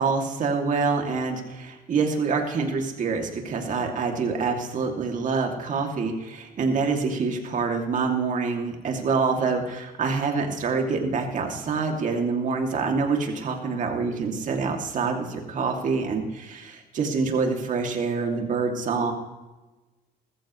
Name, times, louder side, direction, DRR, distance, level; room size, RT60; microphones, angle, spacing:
voice 1, 0.0-19.1, right 4 dB, 50° right, 2 dB, 2.7 m, -26 dB
20.0 x 14.0 x 3.2 m, 1.2 s
cardioid pair, 110°, 17 cm